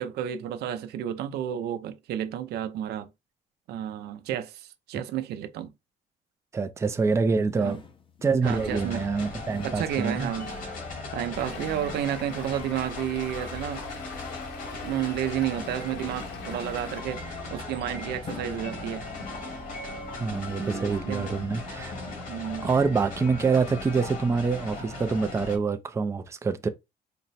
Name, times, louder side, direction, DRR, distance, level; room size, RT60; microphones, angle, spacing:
voice 1, 0.0-3.1 3.7-5.7 7.6-7.8 8.4-9.0 9.6-10.5 11.1-13.8 14.8-19.1 20.6-21.4 22.3-22.7, right 10 dB, 75° right, 0.6 m, -31 dB
voice 2, 6.5-7.8 8.2-10.3 20.2-22.0 22.6-26.7, right 4 dB, 15° right, 0.4 m, -26 dB
sound 1, 7.5-21.0, left 5 dB, 30° left, 0.8 m, -49 dB
sound 2, 8.4-25.6, left 3 dB, 55° left, 2.0 m, -38 dB
Stream, 11.3-17.0, left 5 dB, 75° left, 1.1 m, -46 dB
4.2 x 2.1 x 4.0 m
cardioid pair, 110°, 17 cm